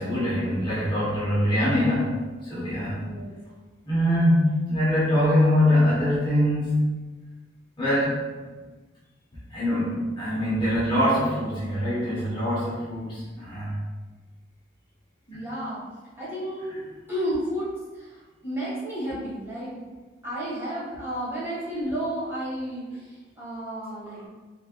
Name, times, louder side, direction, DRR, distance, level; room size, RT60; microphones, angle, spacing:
voice 1, 0.0-2.1 2.4-3.0 3.8-6.7 7.8-8.4 9.5-13.7, left 1 dB, 25° left, -9 dB, 0.9 m, -23 dB
voice 2, 2.9-3.3 15.3-15.8 16.2-16.8 17.1-19.8 20.2-24.2, equal, 15° right, -10 dB, 1.5 m, -32 dB
3.4 x 3.2 x 2.3 m, 1.2 s
head